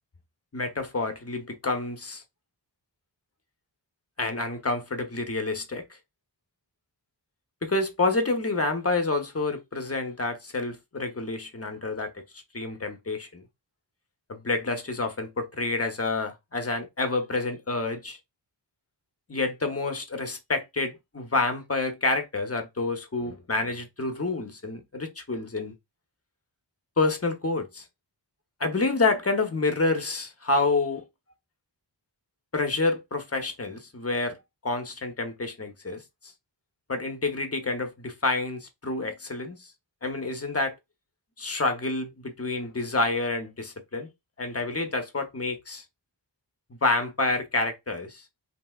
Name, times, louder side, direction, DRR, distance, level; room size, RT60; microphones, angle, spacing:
voice 1, 0.5-2.2 4.2-5.8 7.6-13.4 14.3-18.2 19.3-25.7 27.0-27.8 28.6-31.0 32.5-34.4 34.6-36.0 36.9-39.7 40.0-40.7 41.4-44.1 44.4-45.8 46.8-48.2, left 3 dB, 30° left, 0.7 m, -28 dB
3.3 x 2.8 x 2.3 m
wide cardioid pair, 60°, 45 cm